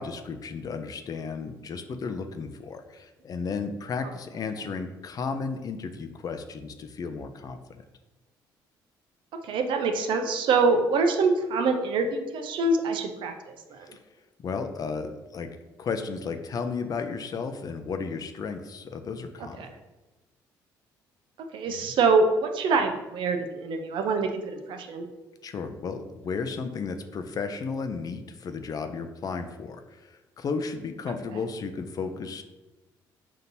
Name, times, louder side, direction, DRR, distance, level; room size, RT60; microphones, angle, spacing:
voice 1, 0.0-7.6 13.9-14.0 14.4-15.5 15.8-19.7 21.8-21.9 25.4-32.4, left 5 dB, 45° left, 7 dB, 0.4 m, -34 dB
voice 2, 9.4-13.9 19.6-19.7 21.5-25.1, right 3 dB, 70° right, 5 dB, 0.5 m, -25 dB
5.1 x 2.8 x 2.7 m, 1.1 s
supercardioid pair, 80°, 9 cm